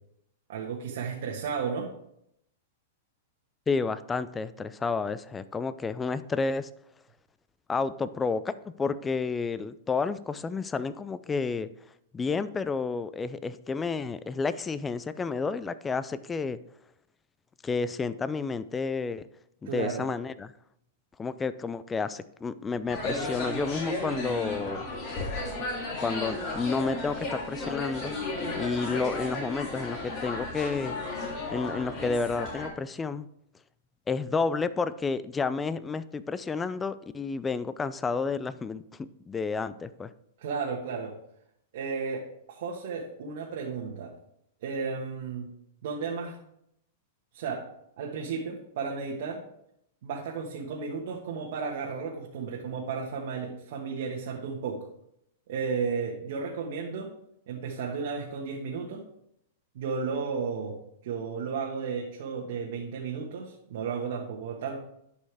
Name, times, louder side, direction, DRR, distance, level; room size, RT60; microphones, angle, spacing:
voice 1, 0.5-1.9 19.6-20.1 40.4-41.1 41.7-44.1 44.6-45.5 45.8-46.4 47.3-47.7 48.0-49.4 50.0-54.8 55.5-57.1 57.5-59.0 59.7-64.8, right 5 dB, 65° right, -1 dB, 1.3 m, -33 dB
voice 2, 3.7-6.7 7.7-11.7 12.1-16.6 17.6-19.2 19.6-20.5 21.2-24.9 26.0-28.2 28.6-30.9 31.5-33.3 34.1-40.1, left 4 dB, 15° left, 15 dB, 0.3 m, -31 dB
sound 1, 22.9-32.7, left 2 dB, 35° left, 3.0 m, -34 dB
11.5 x 5.4 x 3.4 m, 0.75 s
hypercardioid pair, 145°, 0 cm